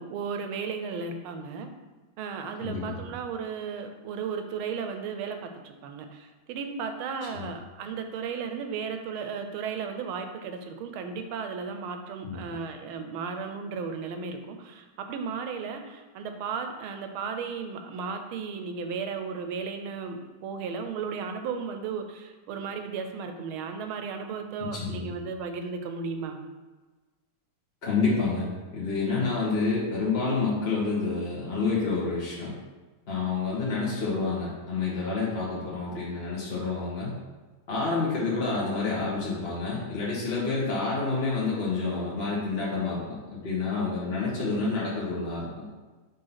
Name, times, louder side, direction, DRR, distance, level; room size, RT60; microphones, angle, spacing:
voice 1, 0.0-1.7 2.2-26.4 29.1-29.3, right 5 dB, 85° right, 6 dB, 1.5 m, -35 dB
voice 2, 2.6-3.0 7.3-7.5 12.2-12.4 24.6-25.1 27.8-32.5 33.1-37.2 37.7-45.7, left 4 dB, 35° left, -7 dB, 1.3 m, -28 dB
5.5 x 3.7 x 5.6 m, 1.3 s
omnidirectional pair, 2.3 m